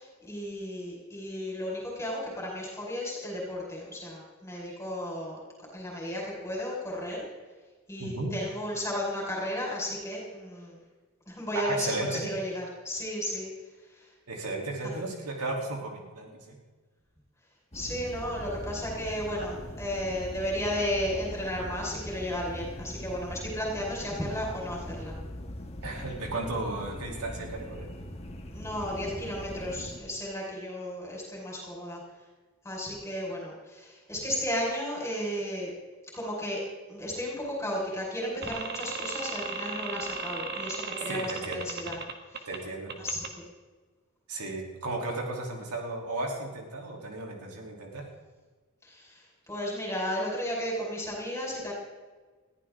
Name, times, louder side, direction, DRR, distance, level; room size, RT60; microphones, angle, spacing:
voice 1, 0.0-5.4 5.7-7.2 7.9-10.8 11.2-13.5 13.9-14.1 17.7-25.1 28.5-32.0 32.6-35.7 36.1-36.6 36.9-42.0 42.3-42.5 43.0-43.4 48.8-51.7, equal, 10° left, -3 dB, 5.0 m, -34 dB
voice 2, 8.0-8.3 11.5-12.2 14.3-16.6 25.8-27.9 41.1-41.6 42.5-42.9 44.3-48.0, right 2 dB, 90° right, 0 dB, 3.3 m, -34 dB
sound 1, 17.7-30.0, equal, 30° left, 1.7 m, -41 dB
sound 2, 38.4-42.6 42.9-43.3, right 4 dB, 45° right, 1.6 m, -36 dB
21.0 x 14.5 x 3.8 m, 1.3 s
head